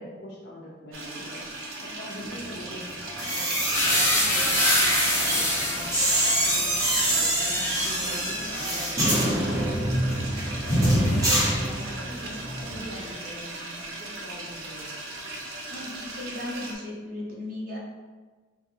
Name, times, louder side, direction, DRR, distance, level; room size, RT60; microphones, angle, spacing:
voice 1, 0.0-1.4 1.8-2.9 3.3-9.7 10.7-15.0, equal, 55° left, -5 dB, 0.8 m, -42 dB
Agua cae en Tanque, 0.9-16.7, right 2 dB, 80° right, 0.7 m, -38 dB
Light Metal Door Closing and Locking, 3.1-12.2 12.4-12.8, right 1 dB, 15° right, 1.0 m, -26 dB
sound 1, 3.7-11.7 12.0-13.1, left 1 dB, 15° left, 0.8 m, -27 dB
voice 2, 15.7-17.8, left 1 dB, 45° right, -4 dB, 0.9 m, -36 dB
3.6 x 2.1 x 4.2 m, 1.3 s
head